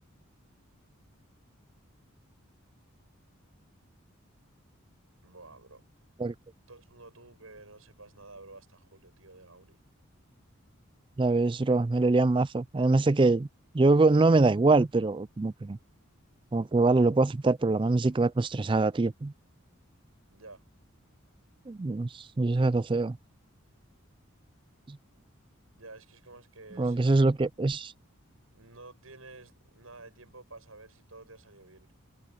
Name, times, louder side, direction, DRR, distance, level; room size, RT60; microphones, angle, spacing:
voice 1, 5.2-5.8 6.7-9.8 20.3-20.6 25.8-27.4 28.5-31.9, right 3 dB, 80° right, 8.0 m, -51 dB
voice 2, 11.2-13.5 13.7-15.8 16.5-19.3 21.7-23.2 24.9-25.0 26.8-27.9, right 3 dB, 25° right, 0.3 m, -24 dB
head